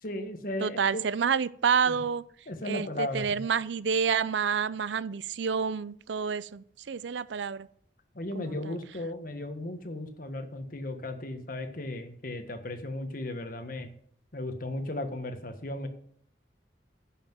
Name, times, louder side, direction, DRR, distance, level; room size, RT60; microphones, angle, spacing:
voice 1, 0.0-1.0 1.9-2.1 2.5-3.4 8.1-13.9 14.3-15.9, left 1 dB, 50° left, 1.4 m, -36 dB
voice 2, 0.6-2.2 2.7-7.7 8.4-8.7, right 6 dB, 80° right, 0.5 m, -29 dB
10.0 x 5.9 x 7.6 m
head